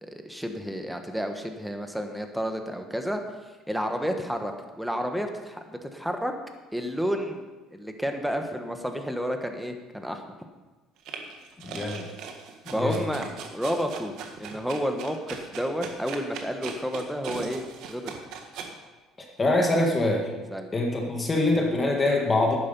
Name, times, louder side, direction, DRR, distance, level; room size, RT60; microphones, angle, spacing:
voice 1, 0.0-3.2 3.7-6.3 6.7-7.4 7.7-10.2 12.7-17.6 17.9-18.1 20.5-20.7, equal, ahead, 5 dB, 1.2 m, -31 dB
sound 1, 11.1-18.7, right 6 dB, 65° right, 1.5 m, -39 dB
voice 2, 11.6-12.1 12.7-13.0 19.4-20.3 20.7-22.5, left 2 dB, 20° left, 0 dB, 1.9 m, -24 dB
11.5 x 9.6 x 5.4 m, 1.2 s
cardioid pair, 130°, 0 cm